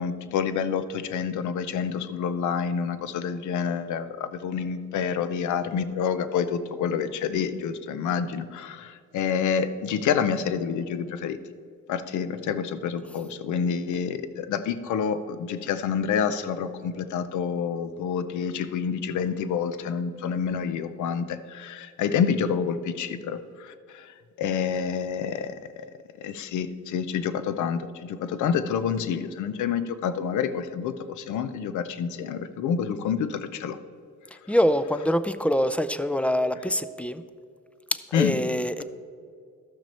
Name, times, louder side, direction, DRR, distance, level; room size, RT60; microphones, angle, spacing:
voice 1, 0.0-11.4 11.9-25.6 26.2-33.8 38.1-38.3, left 7 dB, 75° left, 12 dB, 0.6 m, -28 dB
voice 2, 34.5-37.2 37.9-38.8, equal, 5° left, 13 dB, 0.4 m, -24 dB
13.5 x 6.0 x 4.3 m, 2.2 s
cardioid pair, 90°, 30 cm